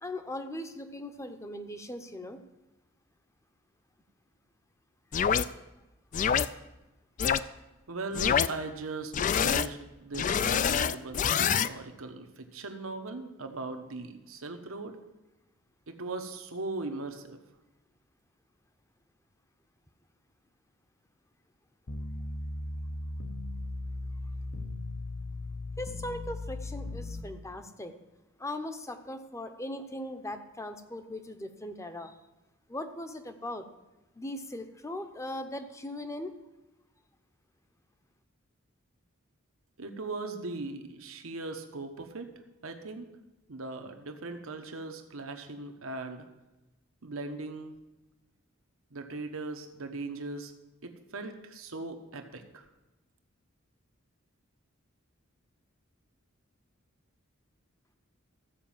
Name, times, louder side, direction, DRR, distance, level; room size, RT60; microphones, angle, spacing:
voice 1, 0.0-2.4 25.8-27.9 28.4-32.1 32.7-33.6 34.2-36.4, left 1 dB, 15° left, 8 dB, 0.7 m, -39 dB
sound 1, 5.1-5.5 6.1-6.5 7.2-7.4 8.1-8.5 9.1-9.7 10.1-11.7, left 7 dB, 40° left, 0.3 m, -26 dB
voice 2, 7.9-9.1 9.4-15.0 15.9-17.4 39.8-42.3 42.6-43.1 43.5-46.3 47.0-47.8 48.9-50.5 50.8-52.6, right 3 dB, 90° right, 6 dB, 1.1 m, -39 dB
sound 2, 21.9-27.2, left 2 dB, 65° left, 0.9 m, -37 dB
14.0 x 5.1 x 7.3 m, 1.0 s
head